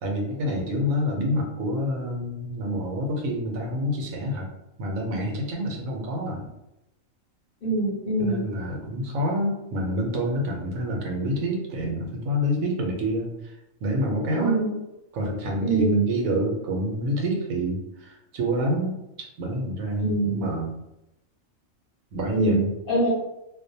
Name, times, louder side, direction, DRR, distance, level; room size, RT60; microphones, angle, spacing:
voice 1, 0.0-4.5 4.8-6.5 8.2-13.5 13.8-14.6 15.1-19.0 19.4-20.7 22.1-22.7, equal, 85° right, 1 dB, 1.0 m, -27 dB
voice 2, 7.6-8.4 14.3-14.7 15.6-16.1 20.0-20.5 22.3-23.1, right 2 dB, 50° left, -5 dB, 0.7 m, -24 dB
2.5 x 2.0 x 2.6 m, 0.91 s
omnidirectional pair, 1.4 m